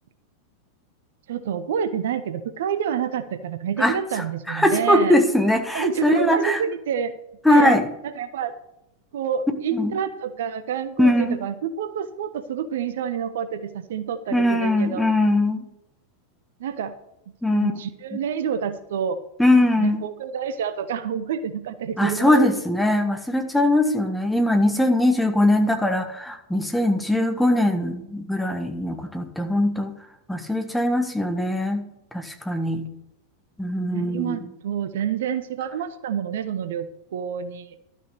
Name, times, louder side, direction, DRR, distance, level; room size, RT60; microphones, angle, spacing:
voice 1, 1.3-5.2 5.7-7.1 7.5-8.5 9.1-15.1 16.6-16.9 17.5-19.2 19.8-22.5 33.9-37.8, right 8 dB, 60° right, 11 dB, 0.7 m, -28 dB
voice 2, 3.8-6.6 7.4-7.8 9.7-9.9 11.0-11.4 14.3-15.6 17.4-17.7 19.4-20.0 22.0-29.9 30.3-31.9 32.1-32.9 33.6-34.4, left 1 dB, 5° left, 5 dB, 1.4 m, -21 dB
12.5 x 6.3 x 6.7 m, 0.85 s
figure-of-eight pair, 90°, 0 cm